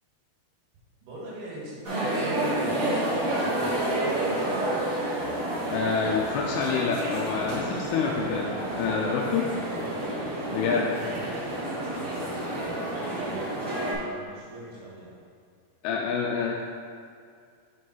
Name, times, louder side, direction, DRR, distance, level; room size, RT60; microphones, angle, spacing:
voice 1, 1.0-4.7 9.7-10.1 10.6-15.1, right 1 dB, 90° right, -6 dB, 3.4 m, -42 dB
sound 1, 1.8-13.9, right 1 dB, 65° right, 1.0 m, -29 dB
voice 2, 5.7-9.5 10.5-10.9 15.8-16.6, left 6 dB, 90° left, -1 dB, 2.5 m, -27 dB
6.7 x 4.8 x 4.4 m, 2.2 s
omnidirectional pair, 4.4 m